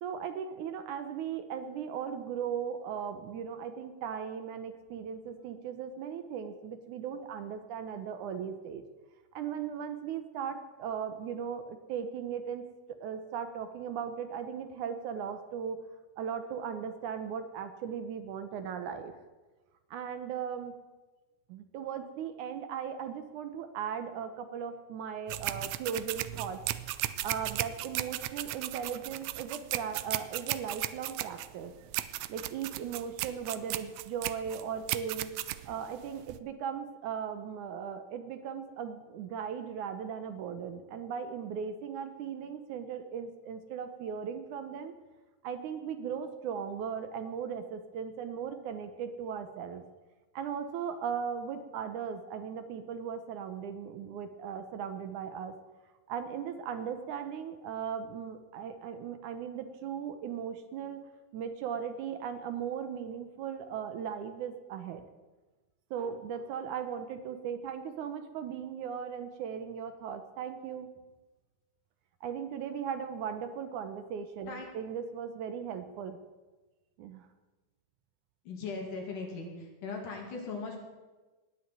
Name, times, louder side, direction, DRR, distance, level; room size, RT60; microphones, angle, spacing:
voice 1, 0.0-8.8 9.3-12.6 13.0-15.8 16.2-19.1 19.9-20.8 21.5-26.6 26.9-31.7 32.3-35.3 35.7-44.9 45.4-49.8 50.3-55.5 56.1-61.0 61.3-65.0 65.9-70.9 72.2-76.2 77.0-77.3, right 7 dB, 75° right, 9 dB, 2.2 m, -38 dB
sound 1, 25.3-36.4, right 15 dB, 90° right, 1.6 m, -36 dB
voice 2, 78.4-80.8, left 4 dB, 70° left, 1 dB, 4.1 m, -39 dB
19.0 x 6.4 x 9.2 m, 1.2 s
omnidirectional pair, 3.9 m